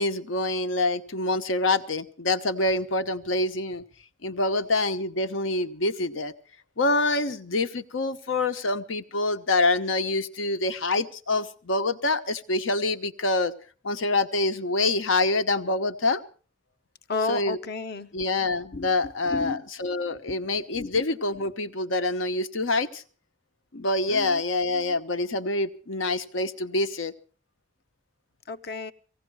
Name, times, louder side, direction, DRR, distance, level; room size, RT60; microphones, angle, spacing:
voice 1, 0.0-3.8 4.2-6.3 6.8-13.5 13.8-16.2 17.3-17.6 18.1-23.0 23.7-27.1, left 2 dB, 85° left, 1.0 m, -26 dB
voice 2, 17.1-18.1 18.7-18.9 19.3-19.7 20.3-20.4 20.7-20.9 24.1-24.4 28.5-28.9, left 3 dB, 55° left, 0.9 m, -32 dB
18.5 x 16.5 x 4.7 m
head